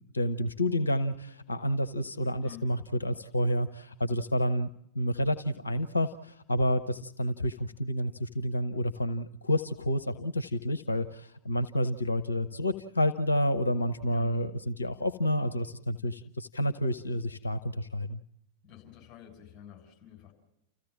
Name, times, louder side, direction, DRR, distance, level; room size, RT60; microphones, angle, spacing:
voice 1, 0.0-4.7 4.9-18.2, equal, 75° left, 10 dB, 0.8 m, -29 dB
voice 2, 18.6-20.3, left 11 dB, 25° left, 2 dB, 7.5 m, -49 dB
29.5 x 15.5 x 7.3 m, 0.81 s
figure-of-eight pair, 90°, 0 cm